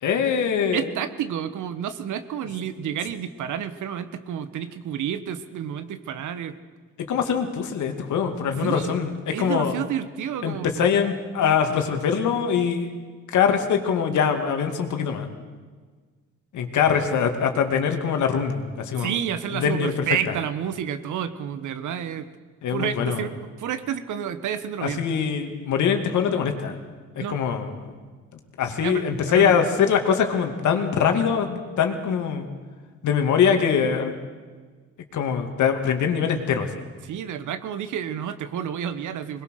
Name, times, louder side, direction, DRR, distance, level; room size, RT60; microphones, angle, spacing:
voice 1, 0.0-0.9 7.0-9.1 9.4-9.7 10.4-12.9 13.3-15.3 16.5-19.2 19.5-19.9 22.6-23.3 24.8-26.8 27.3-27.9 28.6-32.5 33.0-34.2 35.1-36.8, left 7 dB, 75° left, 5 dB, 2.4 m, -23 dB
voice 2, 0.7-6.6 8.6-9.0 9.3-10.8 19.0-22.3 22.7-23.3 23.6-25.0 27.2-27.4 28.8-29.6 37.0-39.4, right 9 dB, 75° right, 11 dB, 1.4 m, -30 dB
21.5 x 20.5 x 6.6 m, 1.5 s
cardioid pair, 90°, 30 cm